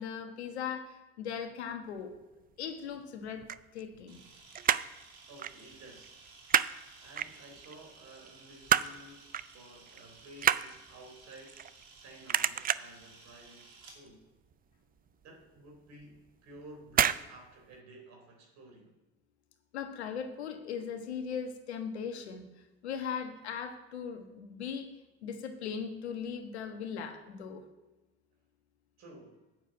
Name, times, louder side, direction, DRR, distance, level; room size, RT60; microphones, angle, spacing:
voice 1, 0.0-2.1 2.6-4.2 19.7-22.4 22.8-24.9 25.2-27.6, left 7 dB, 90° left, 6 dB, 1.3 m, -39 dB
sound 1, 3.3-4.3 4.5-5.0 5.4-5.6 5.9-6.7 7.2-7.7 8.2-9.0 9.3-9.6 9.9-12.0 12.3-13.0 13.5-13.8 14.1-14.2 14.5-14.6 15.1-15.2 16.0-16.3 16.9-17.2 17.5-17.6, right 9 dB, 30° right, 0.4 m, -29 dB
Camera, 4.1-14.0, right 4 dB, 75° right, 2.7 m, -56 dB
voice 2, 5.3-6.2 7.0-11.6 11.9-13.7 13.9-14.3 15.2-18.9 29.0-29.5, right 1 dB, 55° right, 2 dB, 3.7 m, -53 dB
8.6 x 6.8 x 8.0 m, 1.1 s
hypercardioid pair, 70°, 32 cm